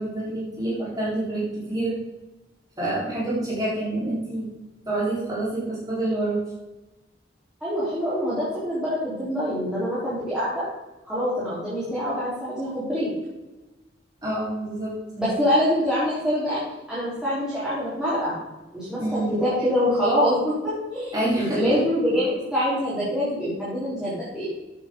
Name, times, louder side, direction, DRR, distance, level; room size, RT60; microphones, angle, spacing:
voice 1, 0.0-2.0 2.8-4.5 4.9-6.4 14.2-15.0 19.0-19.3 21.1-21.8, right 1 dB, 20° right, -7 dB, 4.2 m, -27 dB
voice 2, 7.6-10.6 11.0-13.1 15.2-16.6 16.9-18.4 18.7-24.4, equal, 5° right, -12 dB, 4.0 m, -25 dB
13.5 x 8.5 x 3.9 m, 1.1 s
head